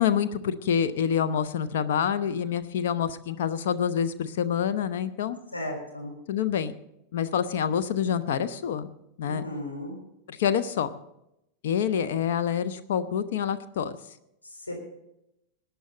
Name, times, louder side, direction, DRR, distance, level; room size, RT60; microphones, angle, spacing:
voice 1, 0.0-5.4 6.3-6.7 7.1-8.9 9.2-9.4 10.3-10.9 11.6-14.0, left 8 dB, 55° left, 10 dB, 0.8 m, -27 dB
voice 2, 5.5-6.1 9.3-10.0 14.4-14.7, left 1 dB, 80° left, -1 dB, 4.0 m, -35 dB
21.5 x 9.4 x 4.0 m, 0.82 s
figure-of-eight pair, 90°, 0 cm